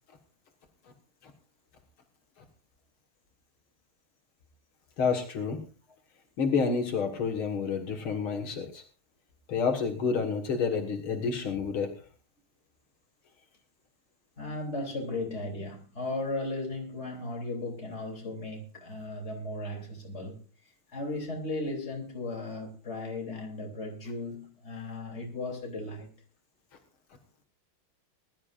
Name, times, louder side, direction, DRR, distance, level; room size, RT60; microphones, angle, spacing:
voice 1, 5.0-5.6 6.4-8.8 9.5-11.9, left 5 dB, 75° left, 2.6 m, -29 dB
voice 2, 14.4-20.4 20.9-26.1, left 2 dB, 30° left, 3.6 m, -36 dB
21.5 x 12.0 x 2.5 m
omnidirectional pair, 2.3 m